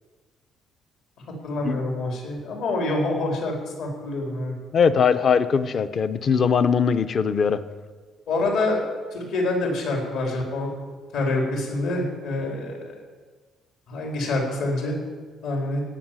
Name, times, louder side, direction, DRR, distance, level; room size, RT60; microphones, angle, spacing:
voice 1, 1.4-4.5 8.3-8.8 9.1-10.7 11.1-12.8 13.9-14.9 15.4-15.8, left 2 dB, 70° left, 1 dB, 4.0 m, -26 dB
voice 2, 4.7-7.6, left 6 dB, 35° left, 13 dB, 0.6 m, -20 dB
17.0 x 6.2 x 9.0 m, 1.5 s
cardioid pair, 180°, 0 cm